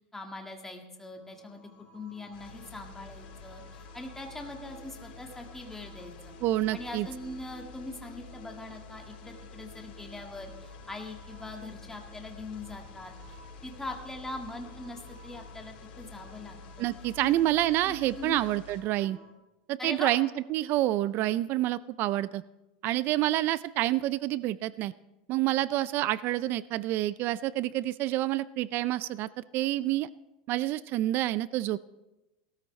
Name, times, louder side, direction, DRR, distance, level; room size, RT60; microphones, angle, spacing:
voice 1, 0.1-1.6 1.9-6.3 6.7-16.9 17.2-17.3 17.8-18.4 19.8-20.1, left 2 dB, 10° left, 2 dB, 1.7 m, -42 dB
sound 1, 1.2-19.3, left 2 dB, 30° left, 2.9 m, -55 dB
sound 2, 2.3-18.8, left 4 dB, 80° left, 4.1 m, -49 dB
voice 2, 6.4-7.1 16.8-19.2 19.7-22.4 22.8-24.9 25.3-30.1 30.5-31.8, right 15 dB, 40° right, 17 dB, 0.4 m, -28 dB
19.0 x 13.5 x 3.2 m, 0.96 s
supercardioid pair, 145°, 5 cm